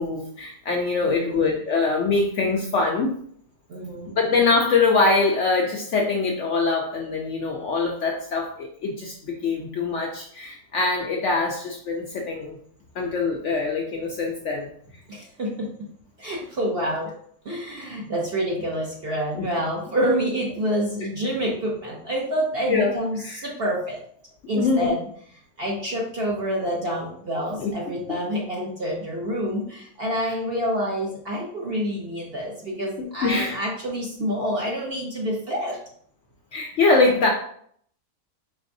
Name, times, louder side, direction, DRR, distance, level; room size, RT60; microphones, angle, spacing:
voice 1, 0.0-3.1 4.2-12.6 12.9-14.7 19.3-19.5 22.7-22.9 23.2-23.5 24.5-24.9 27.6-27.7 33.0-33.6 36.5-37.3, left 3 dB, 65° left, 0 dB, 0.7 m, -23 dB
voice 2, 1.0-1.5 3.7-4.2 15.1-15.7 16.2-17.1 17.4-24.0 24.5-25.1 25.6-35.8, equal, 50° right, -3 dB, 0.8 m, -27 dB
4.5 x 3.4 x 2.6 m, 0.63 s
omnidirectional pair, 1.7 m